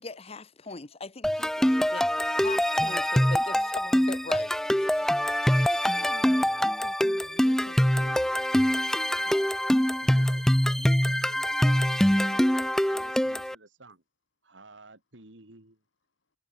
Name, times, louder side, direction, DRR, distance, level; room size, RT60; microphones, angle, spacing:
voice 1, 0.0-5.1, left 3 dB, 35° left, 0.9 m, -41 dB
sound 1, 1.2-13.5, equal, 5° left, 0.4 m, -24 dB
voice 2, 2.7-3.1 5.0-5.1 5.6-8.8 9.1-9.4 10.1-10.3, left 2 dB, 85° left, 1.9 m, -51 dB
voice 3, 6.4-6.9 10.0-10.4 10.8-14.0 14.4-15.8, right 2 dB, 85° right, 3.7 m, -51 dB
head